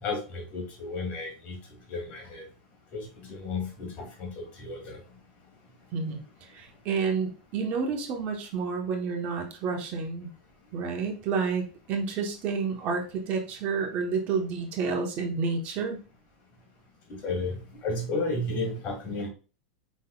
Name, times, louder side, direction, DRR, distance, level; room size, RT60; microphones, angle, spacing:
voice 1, 0.0-1.6 1.9-2.5 2.9-5.0 17.1-19.3, left 2 dB, 40° left, 2 dB, 2.0 m, -33 dB
voice 2, 5.9-10.3 10.7-16.0, right 5 dB, 45° right, 2 dB, 1.2 m, -30 dB
5.2 x 4.0 x 2.4 m, 0.33 s
supercardioid pair, 130°, 4 cm